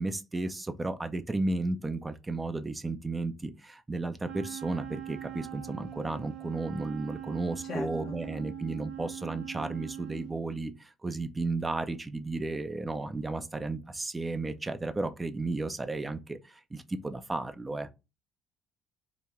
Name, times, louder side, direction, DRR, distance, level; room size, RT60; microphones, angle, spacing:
voice 1, 0.0-17.9, right 2 dB, 20° right, 0.5 m, -33 dB
Wind instrument woodwind instrument, 4.2-10.4, right 12 dB, 60° right, 0.7 m, -42 dB
voice 2, 7.6-8.2, left 4 dB, 50° left, 0.6 m, -40 dB
2.9 x 2.7 x 3.5 m
figure-of-eight pair, 50°, 0 cm